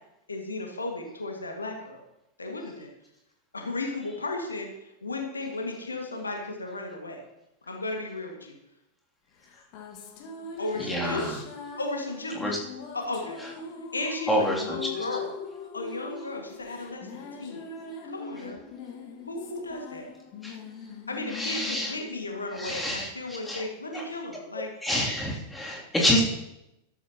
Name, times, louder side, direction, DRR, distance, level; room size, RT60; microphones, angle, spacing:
voice 1, 0.3-2.0 2.4-2.9 3.5-7.2 7.7-8.6 10.6-11.4 11.8-12.6 12.9-13.4 13.9-15.3 15.7-17.6 18.1-18.6 19.3-20.1 21.1-24.7, left 2 dB, 75° left, 2 dB, 2.0 m, -34 dB
sound 1, 9.4-23.1, left 5 dB, 45° left, 1.9 m, -41 dB
voice 2, 10.9-11.3 12.4-12.6 14.3-14.8 20.4-20.5 21.3-21.9 22.6-23.1 23.4-23.6 23.9-24.0 24.8-26.2, left 1 dB, 5° left, -3 dB, 3.0 m, -27 dB
13.5 x 13.0 x 3.0 m, 0.88 s
figure-of-eight pair, 90°, 0 cm